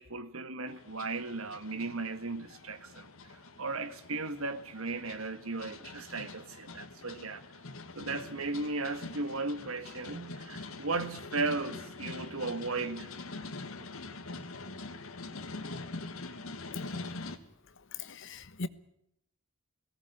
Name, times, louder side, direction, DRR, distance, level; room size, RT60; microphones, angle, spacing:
voice 1, 0.0-7.4 7.9-13.1, right 3 dB, 85° right, 1.7 m, -36 dB
sound 1, 0.7-17.4, left 3 dB, 90° left, 1.8 m, -44 dB
voice 2, 17.9-18.7, left 3 dB, 65° left, 1.3 m, -39 dB
18.0 x 18.0 x 9.5 m
head